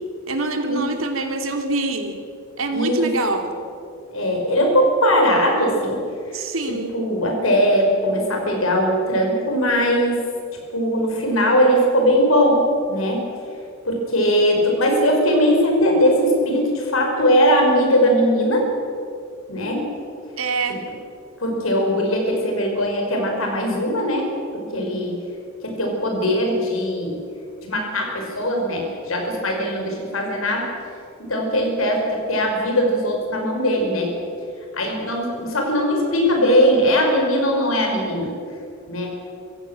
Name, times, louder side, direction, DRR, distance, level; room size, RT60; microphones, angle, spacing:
voice 1, 0.3-2.2 2.6-3.5 6.3-6.9 20.4-20.8, right 3 dB, 75° right, 5 dB, 2.9 m, -25 dB
voice 2, 2.7-3.1 4.1-6.0 6.3-10.2 10.7-12.6 12.9-13.2 13.8-18.7 19.5-19.9 21.4-25.2 25.6-27.2 27.6-30.7 31.2-34.1 34.7-38.3 38.9-39.1, equal, 80° left, 1 dB, 5.8 m, -20 dB
26.0 x 15.5 x 7.7 m, 2.4 s
head